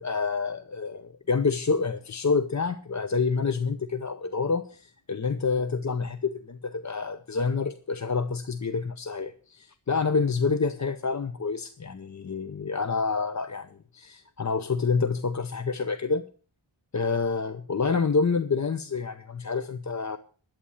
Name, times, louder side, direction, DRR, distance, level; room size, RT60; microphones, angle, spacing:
voice 1, 0.0-16.3 16.9-20.2, left 4 dB, 35° left, 11 dB, 0.8 m, -28 dB
11.5 x 8.7 x 7.2 m, 0.40 s
wide cardioid pair, 80°, 48 cm